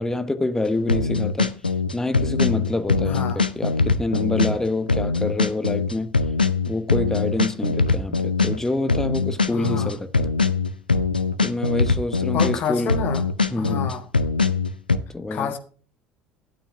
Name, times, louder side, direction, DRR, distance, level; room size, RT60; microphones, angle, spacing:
voice 1, 0.0-1.5 1.9-6.2 6.7-10.3 11.4-13.0 13.5-13.9 15.1-15.5, left 2 dB, 10° left, 1.0 m, -27 dB
sound 1, 0.9-12.6 12.9-15.0, left 4 dB, 85° left, 0.5 m, -22 dB
voice 2, 3.0-3.4 9.5-9.9 12.3-13.2 13.5-14.0 15.3-15.6, left 7 dB, 45° left, 1.5 m, -28 dB
11.5 x 9.0 x 3.6 m
figure-of-eight pair, 65°, 5 cm